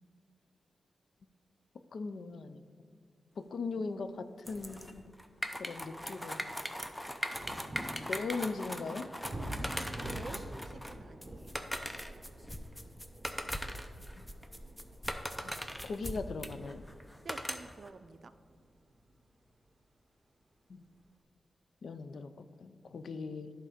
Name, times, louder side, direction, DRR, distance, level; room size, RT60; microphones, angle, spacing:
voice 1, 1.9-2.7 3.4-5.1 5.6-6.5 8.1-9.1 14.2-14.3 15.4-15.5 15.8-16.9 20.7-20.8 21.8-23.5, left 4 dB, 70° left, 11 dB, 0.4 m, -39 dB
sound 1, 4.5-17.9, equal, 5° left, 0.5 m, -40 dB
sound 2, 5.1-19.8 20.7-20.8, right 1 dB, 25° right, 1.0 m, -48 dB
voice 2, 9.7-11.4 17.2-18.3, right 4 dB, 50° right, 12 dB, 0.4 m, -49 dB
11.0 x 3.8 x 5.0 m, 2.1 s
wide cardioid pair, 105°, 0 cm